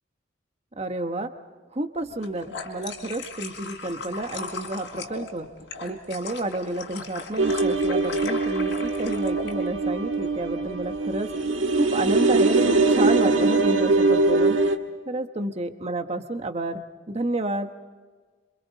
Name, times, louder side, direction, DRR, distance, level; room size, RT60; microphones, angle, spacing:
voice 1, 0.8-1.3 1.7-5.5 5.8-11.3 11.8-14.6 15.1-17.7, right 2 dB, 30° right, 6 dB, 1.3 m, -30 dB
sound 1, 2.1-9.5, left 4 dB, 65° left, 4.1 m, -38 dB
sound 2, 7.4-14.8, right 3 dB, 70° right, 1.7 m, -22 dB
28.0 x 26.5 x 4.2 m, 1.4 s
head